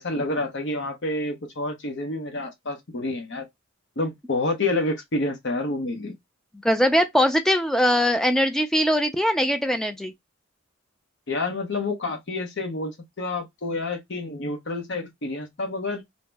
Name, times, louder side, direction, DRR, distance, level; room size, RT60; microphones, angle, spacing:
voice 1, 0.0-3.4 4.0-6.1 11.3-16.0, left 2 dB, 55° left, 0.8 m, -28 dB
voice 2, 6.6-10.1, equal, ahead, 0.3 m, -21 dB
2.7 x 2.0 x 3.3 m
head